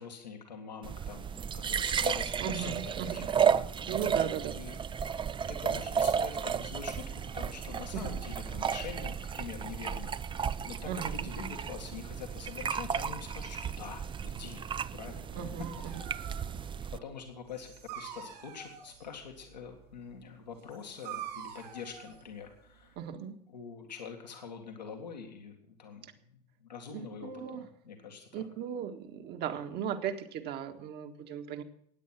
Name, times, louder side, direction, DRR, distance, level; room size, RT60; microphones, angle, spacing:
voice 1, 0.0-4.0 4.5-4.8 5.5-14.7 14.9-15.4 16.1-16.3 16.9-23.0 23.5-26.0 26.3-28.5, left 6 dB, 90° left, 3 dB, 2.1 m, -45 dB
sound 1, 0.8-17.0, right 7 dB, 25° right, 0.5 m, -33 dB
voice 2, 2.4-3.3 3.9-4.6 7.9-8.0 10.8-11.3 15.4-15.9 23.0-23.3 26.9-27.7 28.3-31.6, right 8 dB, 50° right, 6 dB, 1.7 m, -37 dB
Dog, 15.3-23.1, right 8 dB, 75° right, 6.9 m, -47 dB
16.0 x 9.8 x 6.0 m, 0.69 s
hypercardioid pair, 75°, 21 cm